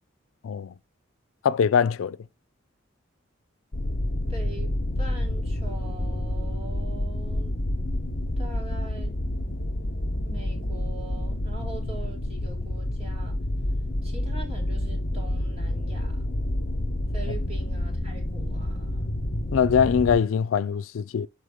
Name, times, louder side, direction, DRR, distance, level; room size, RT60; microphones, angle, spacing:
voice 1, 0.4-0.7 1.4-2.2 19.5-21.3, left 7 dB, 90° left, 0.4 m, -22 dB
sound 1, 3.7-20.2, left 1 dB, 50° left, 0.9 m, -29 dB
voice 2, 4.3-7.5 8.4-9.2 10.1-13.4 14.0-16.2 17.1-19.1, right 3 dB, 30° right, 2.4 m, -43 dB
6.4 x 4.9 x 3.6 m
head